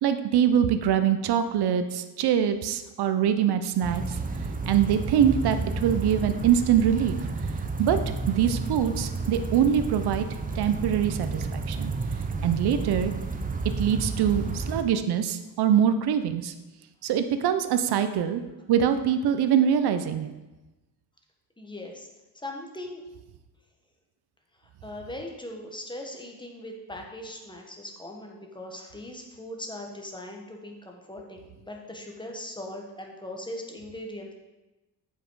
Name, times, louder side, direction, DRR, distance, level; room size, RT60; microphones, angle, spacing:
voice 1, 0.0-4.2 4.7-7.2 7.8-8.0 8.3-10.3 10.6-11.9 12.4-13.1 13.8-16.5 17.0-18.4 18.7-20.3, right 9 dB, 70° right, 9 dB, 0.6 m, -24 dB
sound 1, 3.8-14.8, right 3 dB, 20° right, 0.6 m, -31 dB
voice 2, 21.6-22.1 22.4-23.0 24.8-34.3, left 1 dB, 10° left, 1 dB, 1.1 m, -39 dB
7.3 x 5.6 x 4.6 m, 1.1 s
cardioid pair, 120°, 41 cm